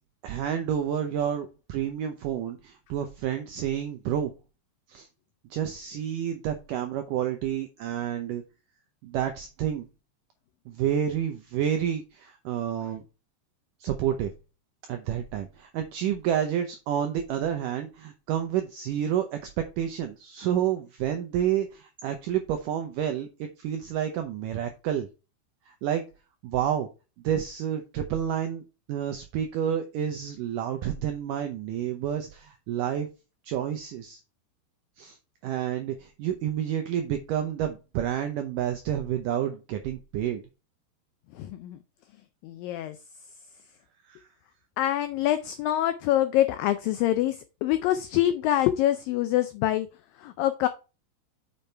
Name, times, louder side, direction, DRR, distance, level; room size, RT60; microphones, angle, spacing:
voice 1, 0.2-4.3 4.9-5.1 5.5-8.4 9.0-9.9 10.7-13.0 13.8-14.3 14.9-19.5 19.8-25.1 25.7-26.0 26.4-26.9 27.2-33.1 33.4-34.2 35.0-35.2 35.4-40.4 44.1-44.3, right 10 dB, 85° right, 7 dB, 1.9 m, -29 dB
voice 2, 41.3-41.8 42.4-43.0 44.8-49.9 50.2-50.7, left 13 dB, 85° left, 10 dB, 2.0 m, -25 dB
6.9 x 5.4 x 4.5 m, 0.30 s
omnidirectional pair, 4.7 m